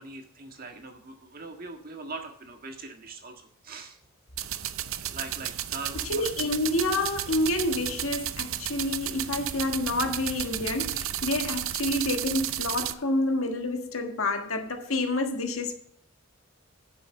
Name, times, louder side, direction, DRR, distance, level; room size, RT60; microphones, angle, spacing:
voice 1, 0.0-4.0 5.0-6.5, right 3 dB, 45° right, 1.6 m, -41 dB
sound 1, 4.4-12.9, right 11 dB, 70° right, 0.6 m, -33 dB
voice 2, 5.9-15.7, left 2 dB, 75° left, 1.6 m, -28 dB
10.0 x 7.1 x 5.5 m
head